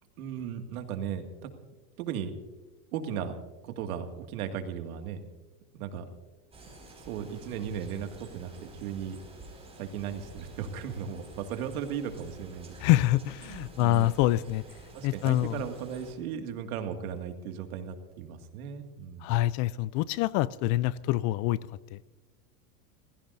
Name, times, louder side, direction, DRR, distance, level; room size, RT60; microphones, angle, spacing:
voice 1, 0.2-1.5 2.0-2.3 2.9-3.4 3.6-5.2 5.7-6.1 7.0-9.2 9.8-12.8 13.4-14.1 14.9-19.3, right 8 dB, 75° right, 6 dB, 2.2 m, -36 dB
sound 1, 6.5-16.1, right 2 dB, 15° right, 5.3 m, -49 dB
voice 2, 12.8-14.6 15.0-15.6 19.2-21.6 21.9-22.0, left 15 dB, 45° left, 20 dB, 0.5 m, -26 dB
30.0 x 16.0 x 2.6 m, 1.2 s
supercardioid pair, 120°, 44 cm